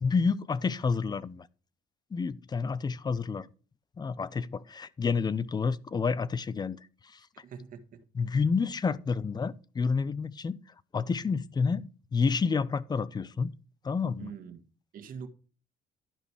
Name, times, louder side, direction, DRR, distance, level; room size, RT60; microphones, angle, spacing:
voice 1, 0.0-1.5 2.1-3.5 4.0-6.8 7.1-7.2 8.2-10.6 10.9-13.5 13.8-14.3, left 5 dB, 25° left, 0.6 m, -29 dB
voice 2, 7.3-8.0 14.2-14.6 14.9-15.3, right 7 dB, 55° right, 1.8 m, -43 dB
12.0 x 5.2 x 4.6 m
cardioid pair, 110°, 17 cm